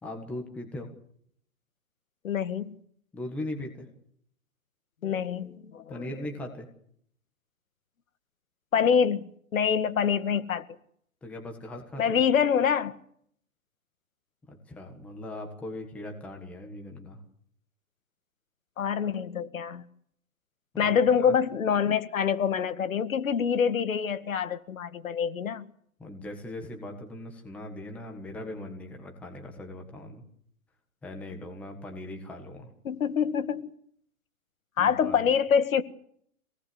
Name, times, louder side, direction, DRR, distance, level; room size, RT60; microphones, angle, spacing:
voice 1, 0.0-0.9 3.1-3.9 5.9-6.7 11.2-12.2 14.5-17.2 20.8-21.3 26.0-30.2 31.0-32.7 34.8-35.2, left 1 dB, 5° left, 1.5 m, -39 dB
voice 2, 2.2-2.8 5.0-6.1 8.7-10.7 12.0-13.0 18.8-19.9 20.8-25.7 32.8-33.7 34.8-35.8, left 7 dB, 65° left, 2.0 m, -26 dB
26.5 x 18.5 x 7.9 m
hypercardioid pair, 180°, 43 cm